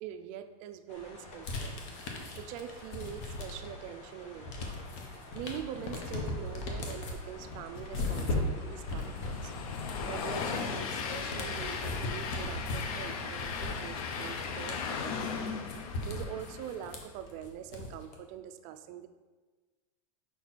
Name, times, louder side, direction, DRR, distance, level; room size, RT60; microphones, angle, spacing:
voice 1, 0.0-1.8 2.1-4.8 5.3-9.5 10.0-15.4 16.0-19.1, right 9 dB, 40° right, 9 dB, 0.4 m, -44 dB
sound 1, 0.9-9.3, left 2 dB, 35° left, 1.1 m, -51 dB
sound 2, 1.4-3.9 4.2-18.1, left 2 dB, 60° left, 1.1 m, -38 dB
Train, 7.6-17.1, left 5 dB, 75° left, 0.7 m, -37 dB
5.3 x 4.5 x 4.1 m, 1.3 s
supercardioid pair, 150°, 19 cm